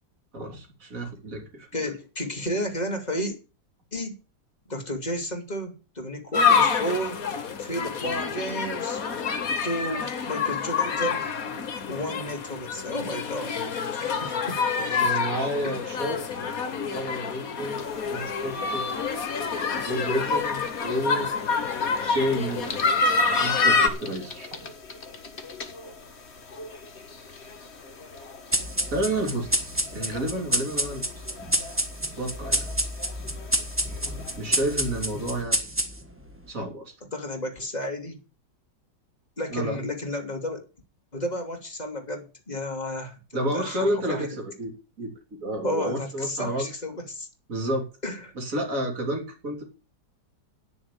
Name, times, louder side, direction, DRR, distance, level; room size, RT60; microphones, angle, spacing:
voice 1, 0.3-1.9 14.9-16.2 16.9-17.8 18.1-18.9 19.8-21.3 22.0-23.1 23.4-24.6 28.9-31.0 32.2-32.6 34.4-35.7 36.5-36.9 39.5-39.8 43.3-44.7 45.0-45.1 45.4-46.7 47.5-47.9 48.4-49.6, right 1 dB, 50° right, 3.8 m, -30 dB
voice 2, 1.7-3.4 3.9-4.2 4.7-7.2 7.6-9.0 9.6-11.3 11.9-13.6 13.9-15.2 15.6-15.8 37.1-38.2 39.4-40.7 41.1-44.3 45.6-47.3 48.0-48.3, equal, 25° left, 2.9 m, -32 dB
sound 1, 6.3-23.9, left 5 dB, 55° left, 1.8 m, -27 dB
sound 2, 17.8-35.4, left 4 dB, 40° left, 1.5 m, -44 dB
sound 3, 28.5-36.3, right 1 dB, 10° right, 1.4 m, -28 dB
10.5 x 7.0 x 8.3 m
omnidirectional pair, 1.9 m